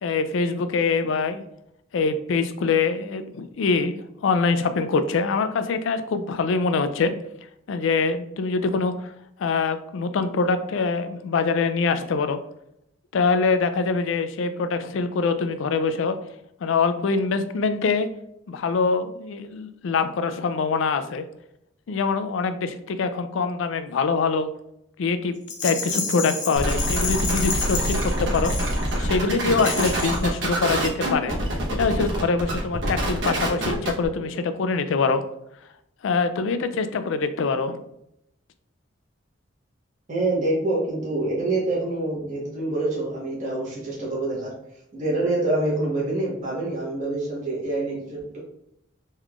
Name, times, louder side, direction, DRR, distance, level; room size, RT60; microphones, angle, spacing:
voice 1, 0.0-1.4 1.9-7.1 7.7-9.1 9.4-12.4 13.1-16.2 16.6-18.1 18.5-21.2 21.9-24.5 25.0-25.3 25.6-28.5 29.0-31.4 31.7-35.2 36.0-37.8, left 4 dB, 80° left, 10 dB, 0.4 m, -24 dB
Rattle, 25.5-29.1 29.6-30.3, left 5 dB, 40° left, 0.6 m, -30 dB
sound 1, 26.6-34.1, right 1 dB, 70° right, 1.0 m, -26 dB
voice 2, 40.1-44.5 44.9-48.4, right 2 dB, 40° right, -6 dB, 1.1 m, -26 dB
3.6 x 3.1 x 2.4 m, 0.78 s
head